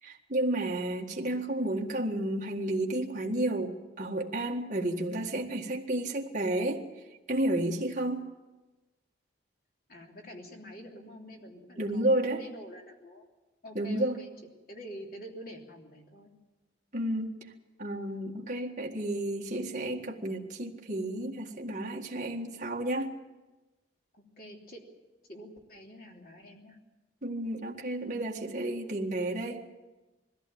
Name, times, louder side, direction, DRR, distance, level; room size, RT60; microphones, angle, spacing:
voice 1, 0.0-6.8 7.3-8.2 11.8-12.4 13.8-14.2 16.9-17.4 17.8-23.1 27.2-29.6, right 1 dB, 40° right, 0 dB, 1.9 m, -31 dB
voice 2, 9.9-13.3 13.6-14.3 14.7-16.3 24.2-24.8 25.3-26.8, equal, 50° left, 0 dB, 3.3 m, -47 dB
21.0 x 15.0 x 8.8 m, 1.1 s
head